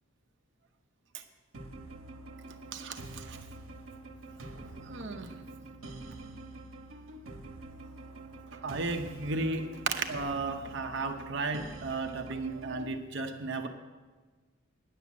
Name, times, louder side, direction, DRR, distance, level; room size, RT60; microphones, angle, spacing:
sound 1, 1.5-13.0, right 2 dB, 75° right, 1.1 m, -46 dB
voice 1, 2.7-3.4 4.9-5.3 8.6-13.7, right 3 dB, 60° right, 5 dB, 0.7 m, -34 dB
10.0 x 7.8 x 8.4 m, 1.3 s
head